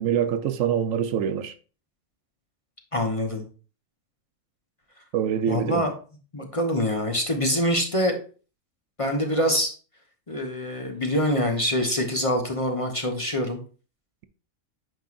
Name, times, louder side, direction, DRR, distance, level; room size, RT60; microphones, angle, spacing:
voice 1, 0.0-1.5 5.1-5.9, right 9 dB, 75° right, 1.0 m, -25 dB
voice 2, 2.9-3.4 5.5-5.9 6.3-8.2 9.0-9.7 10.3-13.6, equal, 25° left, 0.9 m, -25 dB
9.0 x 5.4 x 2.5 m
omnidirectional pair, 1.4 m